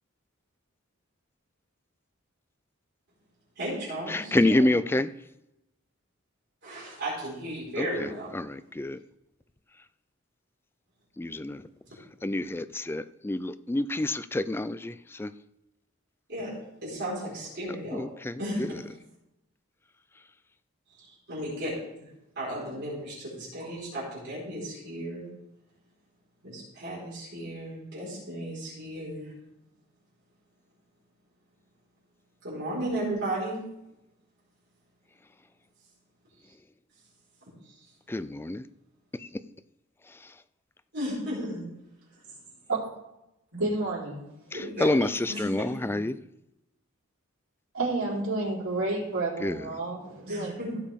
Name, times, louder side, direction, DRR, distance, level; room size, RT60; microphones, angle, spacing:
voice 1, 3.6-4.6 6.6-8.4 16.3-16.5 16.8-18.1 18.4-18.8 21.0-22.1 22.3-25.3 26.4-29.3 32.4-33.6 37.6-37.8 40.9-41.6 44.5-45.0 45.3-46.0 50.3-50.8, right 1 dB, 55° right, -7 dB, 4.7 m, -35 dB
voice 2, 4.1-5.1 8.3-9.0 11.2-11.6 12.2-14.9 15.2-15.3 17.9-18.3 38.1-38.6 44.8-45.1 45.4-46.1 49.4-49.6, left 1 dB, 10° left, 13 dB, 0.3 m, -27 dB
voice 3, 43.5-44.2 47.7-50.5, right 2 dB, 85° right, -6 dB, 4.0 m, -30 dB
16.0 x 7.1 x 3.6 m, 0.88 s
head